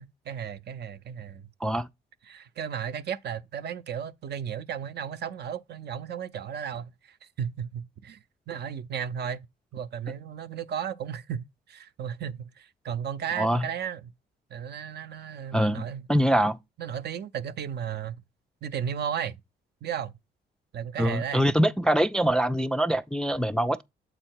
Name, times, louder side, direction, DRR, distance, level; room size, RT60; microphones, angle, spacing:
voice 1, 0.0-1.5 2.3-8.2 8.5-9.5 9.7-14.1 14.5-16.0 16.8-18.2 18.6-19.4 19.8-20.1 20.7-21.5, right 8 dB, 55° right, 0.6 m, -34 dB
voice 2, 15.5-16.6 21.0-23.8, equal, 5° left, 0.3 m, -24 dB
7.8 x 4.3 x 4.5 m
cardioid pair, 90°, 20 cm